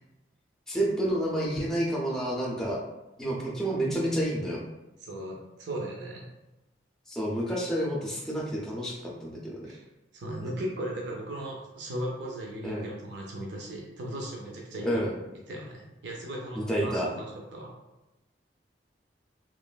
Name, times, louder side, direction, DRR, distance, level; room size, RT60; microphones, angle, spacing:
voice 1, 0.7-2.8 3.2-4.6 7.1-9.7 10.4-10.5 12.6-12.9 14.8-15.2 16.6-17.1, right 1 dB, 5° left, -4 dB, 0.4 m, -29 dB
voice 2, 5.0-6.3 9.6-9.8 10.1-15.0 15.5-17.7, right 1 dB, 70° right, -1 dB, 0.5 m, -37 dB
3.0 x 2.3 x 2.2 m, 0.98 s
head